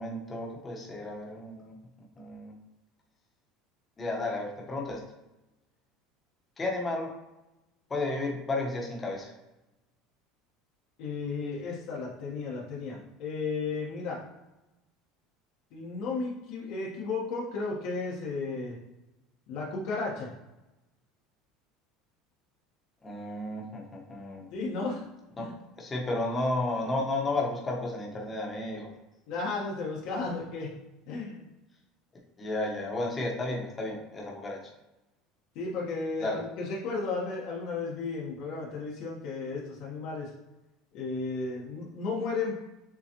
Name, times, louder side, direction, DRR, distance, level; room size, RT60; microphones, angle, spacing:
voice 1, 0.0-1.7 2.2-2.5 4.0-5.0 6.6-7.1 7.9-9.3 23.0-24.5 25.4-25.5 25.7-28.9 32.4-34.6 36.2-36.4, left 2 dB, 20° left, -1 dB, 1.1 m, -32 dB
voice 2, 11.0-14.2 15.7-18.8 19.5-20.3 24.5-25.0 25.4-25.5 29.3-30.7 31.1-31.4 35.5-40.3 40.9-42.6, left 4 dB, 65° left, -4 dB, 1.2 m, -34 dB
7.0 x 2.4 x 2.9 m, 0.99 s
supercardioid pair, 140°, 0 cm